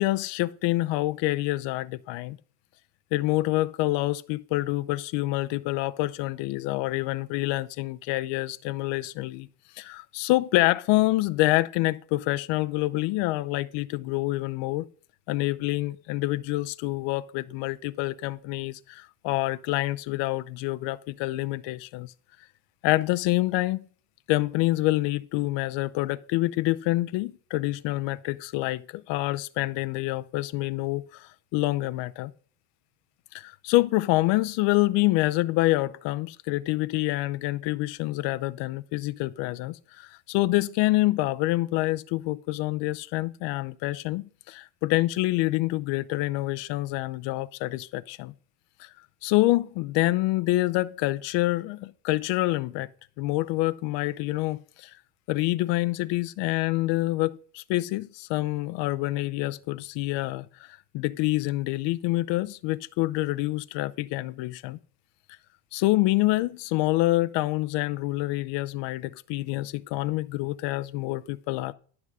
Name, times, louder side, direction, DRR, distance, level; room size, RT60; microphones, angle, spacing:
voice 1, 0.0-2.4 3.1-9.5 9.8-14.9 15.3-22.1 22.8-23.8 24.3-32.3 33.3-48.3 48.8-48.9 49.2-52.9 53.2-54.9 55.3-60.7 60.9-64.8 65.7-71.7, left 18 dB, 60° left, 0.7 m, -27 dB
11.0 x 6.1 x 4.8 m
cardioid pair, 135°, 50 cm